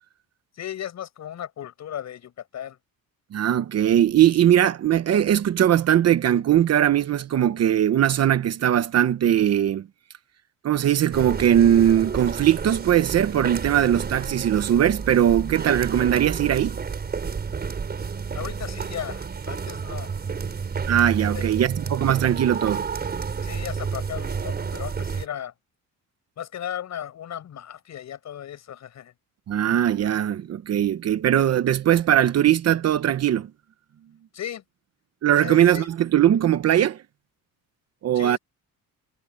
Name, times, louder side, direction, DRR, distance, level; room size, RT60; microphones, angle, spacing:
voice 1, 0.5-2.8 18.3-20.1 21.3-21.5 23.4-25.5 26.4-29.1 34.3-34.6 35.3-35.9 38.1-38.4, left 10 dB, 50° left, 7.1 m, -36 dB
voice 2, 3.3-9.9 10.6-16.8 20.9-22.8 29.5-33.5 35.2-37.0 38.0-38.4, right 10 dB, 45° right, 0.9 m, -20 dB
sound 1, 11.1-25.3, right 5 dB, 25° right, 5.2 m, -30 dB
cardioid pair, 175°, 36 cm